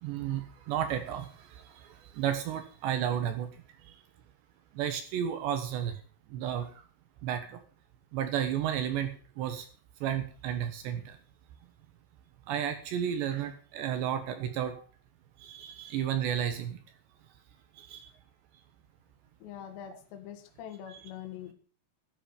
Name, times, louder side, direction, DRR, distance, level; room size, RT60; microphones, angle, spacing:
voice 1, 0.0-3.5 4.8-5.9 6.3-6.7 7.2-7.6 8.1-9.1 9.4-9.7 10.0-11.1 12.5-14.8 15.4-16.8 17.8-18.1 20.9-21.0, right 9 dB, 70° right, 8 dB, 3.1 m, -32 dB
voice 2, 19.4-21.5, left 10 dB, 65° left, 5 dB, 3.6 m, -44 dB
13.0 x 8.5 x 7.2 m, 0.40 s
omnidirectional pair, 5.9 m